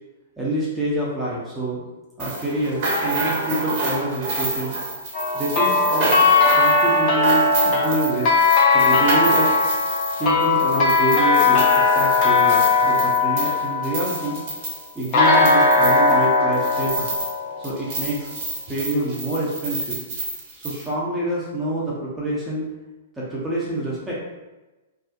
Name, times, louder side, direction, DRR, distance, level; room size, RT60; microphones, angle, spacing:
voice 1, 0.4-1.8 2.2-4.8 5.3-6.2 6.6-8.3 8.7-9.5 10.2-14.4 14.9-17.1 17.6-18.3 18.7-20.0 20.6-22.7 23.2-24.1, right 1 dB, 10° right, -7 dB, 0.6 m, -26 dB
sound 1, 2.2-17.4 17.6-20.9, right 2 dB, 45° right, 0.8 m, -29 dB
sound 2, 5.1-14.4 15.1-18.0, left 3 dB, 40° left, 0.5 m, -18 dB
2.5 x 2.0 x 2.4 m, 1.1 s
figure-of-eight pair, 110°, 0 cm